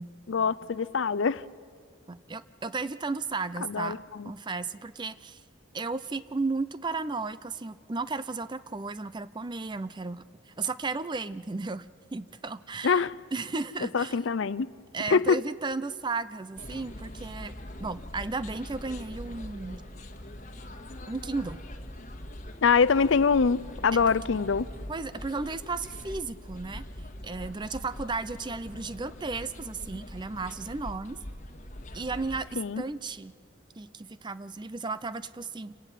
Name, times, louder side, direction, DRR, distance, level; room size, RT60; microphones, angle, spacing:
voice 1, 0.3-1.4 3.6-4.3 12.8-13.2 13.9-14.7 15.1-15.4 22.6-24.7 32.6-32.8, left 5 dB, 70° left, 0.5 m, -24 dB
voice 2, 2.1-4.0 4.2-5.4 5.7-14.2 14.9-17.5 17.8-19.8 21.1-21.6 24.1-24.2 24.9-26.8 27.2-31.2 31.9-33.3 33.8-35.7, right 3 dB, 25° right, 0.5 m, -34 dB
sound 1, 16.6-32.5, left 1 dB, 40° left, 1.8 m, -42 dB
28.0 x 18.0 x 7.5 m
head